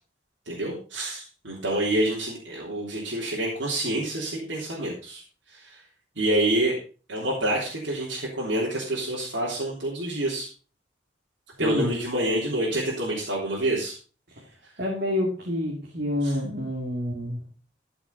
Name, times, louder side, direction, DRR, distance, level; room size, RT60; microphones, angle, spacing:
voice 1, 0.4-5.2 5.5-5.8 6.1-6.8 7.1-10.5 11.6-13.9 16.2-16.3, right 1 dB, 75° right, -4 dB, 3.4 m, -27 dB
voice 2, 11.6-11.9 14.8-17.4, left 1 dB, 55° right, -2 dB, 3.0 m, -28 dB
14.0 x 6.1 x 5.3 m, 0.37 s
head